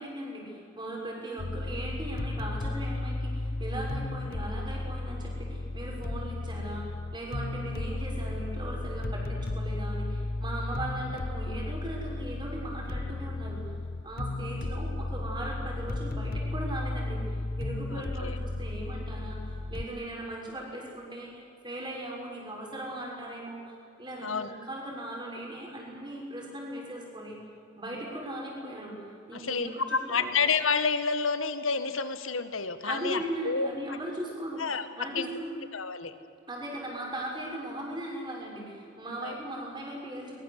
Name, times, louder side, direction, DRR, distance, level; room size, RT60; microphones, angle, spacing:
voice 1, 0.0-13.7 14.0-27.4 27.8-30.3 32.8-34.7 35.0-35.6 36.5-40.4, right 1 dB, 20° right, -1 dB, 6.3 m, -38 dB
sound 1, 1.4-19.8, left 2 dB, 45° left, 0.7 m, -34 dB
voice 2, 17.9-18.4 24.2-24.5 29.3-33.7 34.6-34.9 35.1-35.3 35.7-36.1 39.2-39.4, left 5 dB, 90° left, 11 dB, 1.7 m, -29 dB
22.5 x 21.5 x 8.3 m, 2.6 s
head